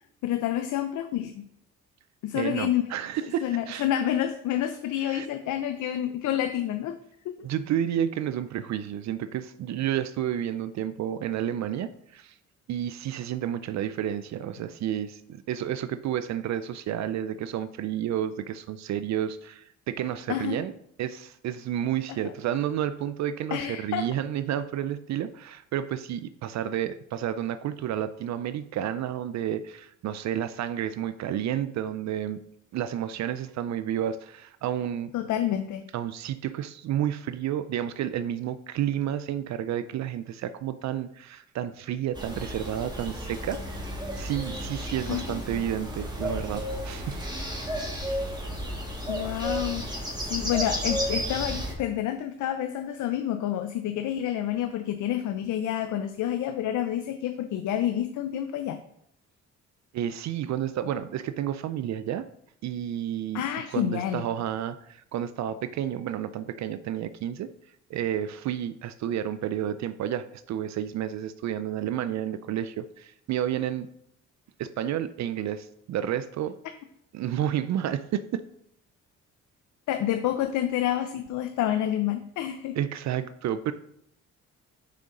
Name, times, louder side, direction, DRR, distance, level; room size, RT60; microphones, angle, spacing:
voice 1, 0.2-1.4 2.2-2.8 3.4-6.9 7.4-7.5 20.3-20.6 22.1-22.3 23.5-24.1 35.1-35.9 45.1-45.4 49.1-58.8 63.3-64.3 79.9-82.8, left 11 dB, 75° left, 8 dB, 0.6 m, -29 dB
voice 2, 2.3-3.9 5.0-5.3 7.4-12.4 12.7-20.7 21.0-32.4 32.7-35.1 35.9-47.2 59.9-62.3 62.6-63.4 63.7-67.5 67.9-73.9 74.6-76.6 77.1-78.4 82.8-83.7, right 10 dB, 65° right, 13 dB, 0.5 m, -31 dB
sound 1, 42.1-51.7, equal, 15° right, 1.6 m, -32 dB
6.6 x 5.2 x 3.7 m, 0.73 s
cardioid pair, 90°, 30 cm